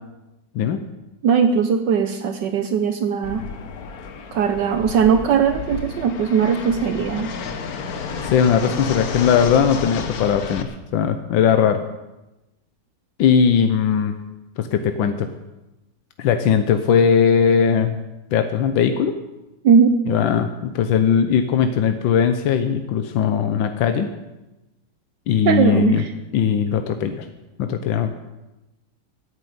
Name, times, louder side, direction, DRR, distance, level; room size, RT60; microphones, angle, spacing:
voice 1, 1.2-3.4 4.3-7.3 19.6-19.9 25.4-26.1, right 7 dB, 70° right, 8 dB, 1.4 m, -19 dB
Fixed-wing aircraft airplane, 3.2-10.6, left 5 dB, 55° left, 1.5 m, -31 dB
voice 2, 8.2-11.8 13.2-14.1 14.6-15.3 16.2-18.0 18.3-19.1 20.1-24.1 25.3-26.0 26.3-27.3 27.6-28.1, left 7 dB, 90° left, 8 dB, 1.6 m, -19 dB
13.0 x 9.9 x 9.4 m, 1.0 s
omnidirectional pair, 2.0 m